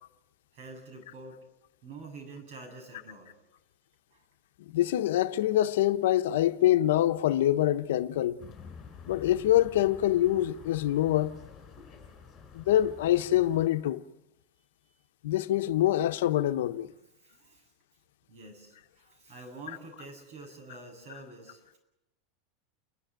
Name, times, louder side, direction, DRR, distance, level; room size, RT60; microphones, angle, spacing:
voice 1, 0.5-1.4 1.8-3.3 4.1-4.2 17.2-17.6 18.3-21.8, right 3 dB, 55° right, 7.7 m, -47 dB
voice 2, 4.7-8.4 9.1-11.3 12.5-14.0 15.2-16.9, left 13 dB, 80° left, 0.9 m, -25 dB
sound 1, 8.4-13.7, left 6 dB, 20° left, 5.3 m, -49 dB
29.5 x 12.0 x 9.0 m
supercardioid pair, 155°, 0 cm